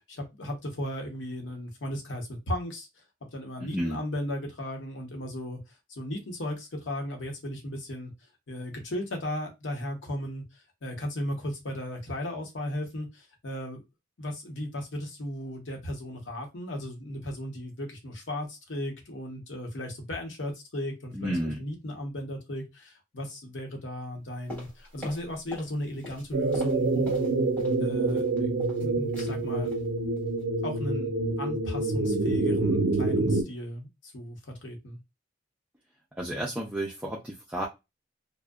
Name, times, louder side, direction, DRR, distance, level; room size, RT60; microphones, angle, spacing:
voice 1, 0.4-2.9 3.3-5.6 5.9-8.1 8.5-10.4 10.8-13.8 14.2-27.3 27.8-28.2 28.8-29.7 30.6-31.1 31.4-35.0, left 1 dB, 80° left, 2 dB, 0.8 m, -36 dB
voice 2, 3.6-4.0 21.1-21.6 36.2-37.7, right 1 dB, 5° right, -3 dB, 0.4 m, -31 dB
sound 1, 24.5-25.7 26.0-27.8 28.1-28.8 29.1-29.4 29.6-29.9 30.2-30.4 30.7-30.8, left 1 dB, 10° left, 1.3 m, -43 dB
sound 2, 26.3-33.4, right 3 dB, 90° right, 0.5 m, -27 dB
2.6 x 2.0 x 2.3 m, 0.23 s
head